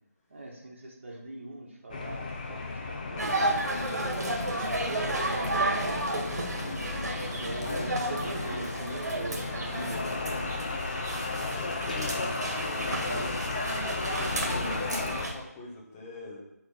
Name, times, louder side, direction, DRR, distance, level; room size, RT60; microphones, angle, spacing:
voice 1, 0.3-3.8 4.7-6.7 7.4-10.6, right 2 dB, 45° right, -2 dB, 1.7 m, -41 dB
sound 1, 1.9-15.3, left 3 dB, 30° left, 0.8 m, -34 dB
sound 2, 3.2-15.3, right 2 dB, 70° right, 1.9 m, -33 dB
voice 2, 7.1-7.9 11.2-13.5 14.2-16.4, left 2 dB, 10° left, -4 dB, 1.2 m, -44 dB
9.9 x 3.8 x 5.6 m, 0.87 s
figure-of-eight pair, 165°, 9 cm